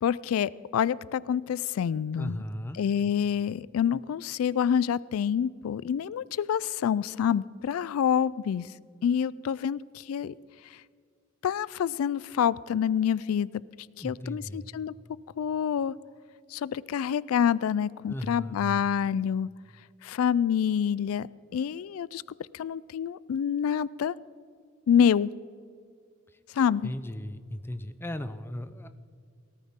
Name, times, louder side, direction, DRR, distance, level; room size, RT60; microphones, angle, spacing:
voice 1, 0.0-2.4 2.7-8.6 9.0-10.3 11.4-13.5 14.0-14.9 15.4-15.9 16.5-19.5 20.0-21.3 21.5-22.2 22.5-24.1 24.9-25.3 26.6-26.9, left 8 dB, 85° left, 21 dB, 0.3 m, -27 dB
voice 2, 2.2-2.8 14.0-14.7 18.1-18.9 26.8-28.9, left 1 dB, 10° left, 11 dB, 0.5 m, -36 dB
18.5 x 13.5 x 3.6 m, 2.2 s
head